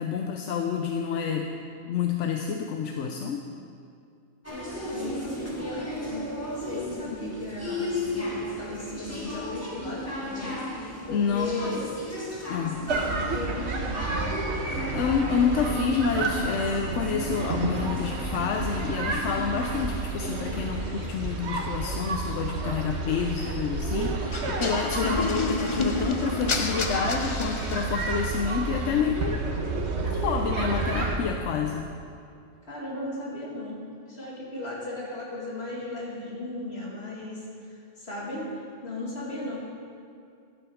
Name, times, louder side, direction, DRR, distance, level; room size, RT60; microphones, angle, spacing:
voice 1, 0.0-1.5 1.8-3.5 11.1-11.8 12.5-12.9 14.5-29.4 30.0-31.9, left 6 dB, 85° left, 3 dB, 1.0 m, -28 dB
sound 1, 4.4-21.4, left 1 dB, 15° left, 1.8 m, -35 dB
voice 2, 4.5-11.9 13.3-14.0 24.9-25.1 32.7-33.8 34.1-39.6, left 2 dB, 60° left, -5 dB, 2.5 m, -36 dB
sound 2, 12.9-31.2, right 3 dB, 70° right, 1.2 m, -31 dB
sound 3, 24.3-28.3, left 4 dB, 35° left, 0.5 m, -30 dB
11.5 x 7.8 x 4.9 m, 2.4 s
omnidirectional pair, 1.2 m